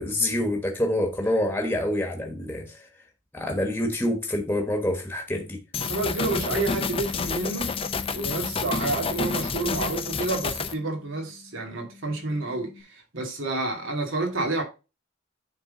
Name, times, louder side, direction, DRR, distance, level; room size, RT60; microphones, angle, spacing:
voice 1, 0.0-2.7 3.3-5.6, left 1 dB, 10° left, 1.3 m, -26 dB
sound 1, 5.7-10.7, left 5 dB, 25° left, 0.5 m, -29 dB
voice 2, 5.8-7.7 8.1-14.6, right 2 dB, 75° right, 2.4 m, -29 dB
Bass guitar, 6.6-12.8, left 5 dB, 5° right, 1.5 m, -43 dB
9.7 x 3.8 x 3.8 m
head